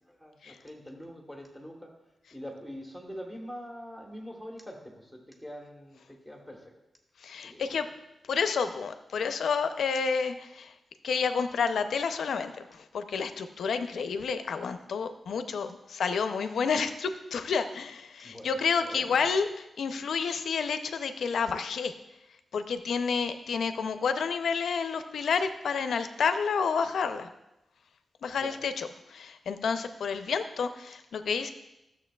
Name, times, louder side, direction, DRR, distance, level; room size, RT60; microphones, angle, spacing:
voice 1, 0.0-1.9 2.3-6.7 7.4-7.9 18.2-19.3 28.3-28.6, equal, 5° right, 0 dB, 1.2 m, -44 dB
voice 2, 7.2-7.9 8.3-10.7 11.0-19.5 19.8-21.9 22.5-27.3 28.2-31.5, left 5 dB, 75° left, 9 dB, 0.5 m, -30 dB
12.5 x 7.1 x 2.3 m, 0.90 s
wide cardioid pair, 180°, 0 cm